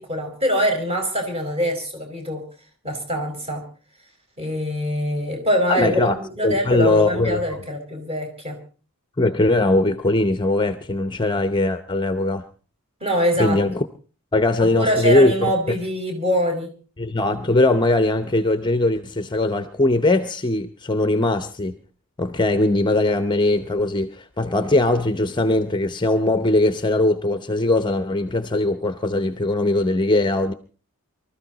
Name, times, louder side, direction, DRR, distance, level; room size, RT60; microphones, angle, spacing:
voice 1, 0.0-2.4 2.8-3.6 4.4-8.6 13.0-13.6 14.6-16.7, equal, 25° right, 5.0 m, -24 dB
voice 2, 5.7-6.1 6.4-7.4 9.2-12.4 13.4-13.8 14.3-15.8 17.0-21.8 22.2-30.5, left 2 dB, 20° left, 0.7 m, -20 dB
24.5 x 13.5 x 4.0 m
head